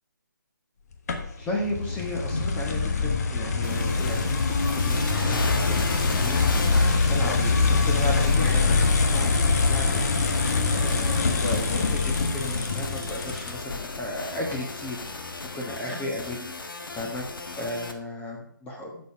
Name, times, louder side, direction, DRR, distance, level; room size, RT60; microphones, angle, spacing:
sound 1, 1.1-13.8, left 4 dB, 50° left, 1.4 m, -24 dB
voice 1, 1.4-16.4 16.9-19.1, left 1 dB, 15° left, 0 dB, 1.4 m, -35 dB
sound 2, 3.6-17.9, left 3 dB, 75° left, 1.5 m, -36 dB
10.0 x 6.7 x 4.7 m, 0.69 s
figure-of-eight pair, 150°, 11 cm